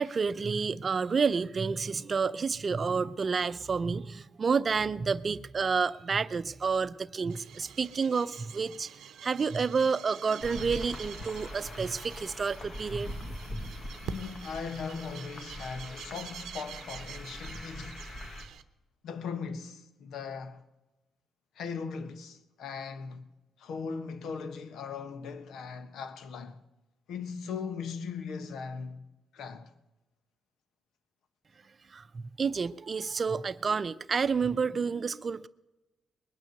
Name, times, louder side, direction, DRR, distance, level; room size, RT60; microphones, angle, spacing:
voice 1, 0.0-8.9 9.2-13.1 31.9-35.5, right 5 dB, 35° right, 0.6 m, -29 dB
sound 1, 7.3-18.6, right 9 dB, 90° right, 0.8 m, -47 dB
sound 2, 10.4-18.4, left 1 dB, 40° left, 2.0 m, -42 dB
voice 2, 14.0-18.1 19.0-20.6 21.5-23.3 23.6-26.6 27.1-29.1 29.3-29.7, left 5 dB, 80° left, 1.2 m, -39 dB
21.0 x 9.3 x 6.7 m
cardioid pair, 110°, 0 cm